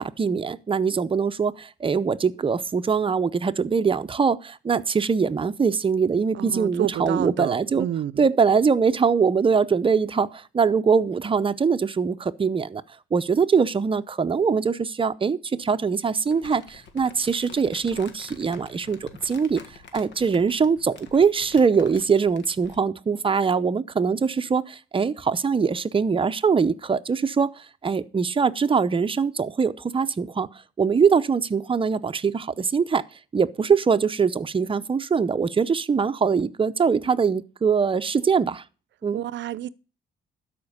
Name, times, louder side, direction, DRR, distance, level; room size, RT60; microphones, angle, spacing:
voice 1, 0.0-7.9 8.2-12.8 13.1-19.6 19.9-27.5 27.8-30.5 30.8-33.0 33.3-38.6 39.0-39.2, right 5 dB, 25° right, 0.7 m, -22 dB
voice 2, 6.3-8.3 39.1-39.7, right 12 dB, 65° right, 0.6 m, -29 dB
Crumpling crinkling, 16.3-22.9, left 5 dB, 65° left, 1.6 m, -48 dB
12.5 x 5.1 x 6.6 m
cardioid pair, 90°, 20 cm